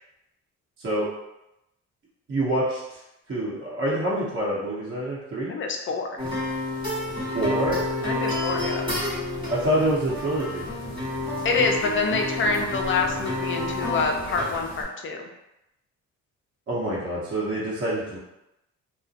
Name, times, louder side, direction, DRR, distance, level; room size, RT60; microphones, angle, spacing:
voice 1, 2.3-3.0 3.3-5.5 7.3-7.8 9.5-10.7 16.7-18.2, right 1 dB, 40° right, -7 dB, 0.9 m, -26 dB
voice 2, 5.5-6.1 8.0-8.8 11.4-15.3, left 4 dB, 40° left, 3 dB, 0.4 m, -26 dB
sound 1, 6.2-14.8, left 2 dB, 15° right, 1.3 m, -29 dB
2.7 x 2.1 x 2.4 m, 0.89 s
cardioid pair, 90°, 30 cm